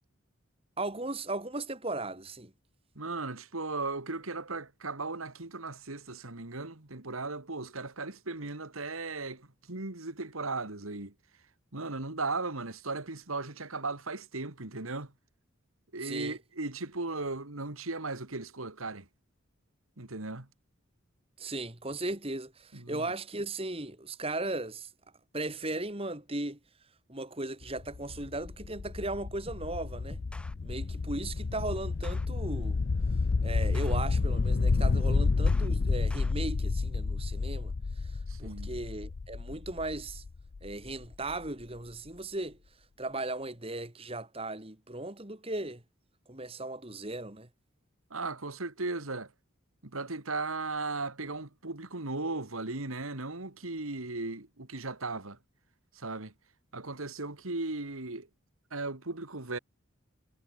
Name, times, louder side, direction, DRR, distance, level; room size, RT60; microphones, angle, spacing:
voice 1, 0.8-2.5 16.0-16.4 21.4-24.9 25.3-26.6 27.1-30.2 30.6-32.8 33.4-40.2 40.6-42.6 43.0-45.8 46.3-47.5, right 2 dB, 25° right, 2.5 m, -37 dB
voice 2, 3.0-11.1 11.7-15.1 15.9-19.1 20.0-20.5 22.7-23.1 38.3-38.8 48.1-49.3 49.9-55.4 55.9-56.3 56.7-58.3 58.7-59.6, right 3 dB, 90° right, 2.5 m, -37 dB
sound 1, 27.6-41.3, left 4 dB, 55° left, 0.5 m, -30 dB
sound 2, 29.5-29.8 30.1-30.5 31.4-32.3 33.1-34.5 34.8-36.3, equal, 5° left, 4.1 m, -47 dB
head